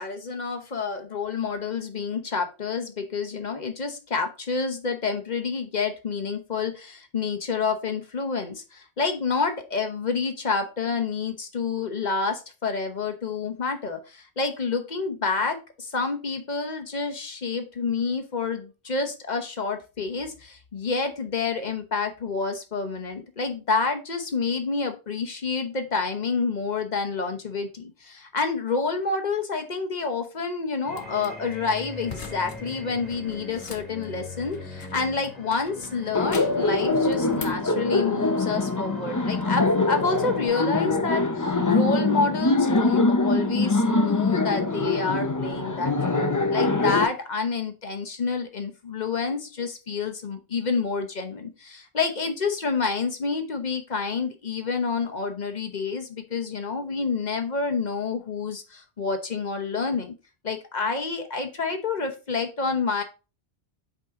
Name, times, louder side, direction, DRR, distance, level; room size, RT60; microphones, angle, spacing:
voice 1, 0.0-60.1 60.4-63.0, left 4 dB, 45° left, 7 dB, 1.0 m, -28 dB
sound 1, 30.8-40.5, left 3 dB, ahead, 2.1 m, -41 dB
sound 2, 30.9-31.3 32.0-32.6 32.9-35.1 35.5-36.7 37.1-37.7, left 5 dB, 75° left, 1.3 m, -42 dB
Laughter, 36.1-47.0, left 3 dB, 20° left, 0.5 m, -23 dB
5.4 x 5.0 x 3.7 m, 0.32 s
omnidirectional pair, 1.1 m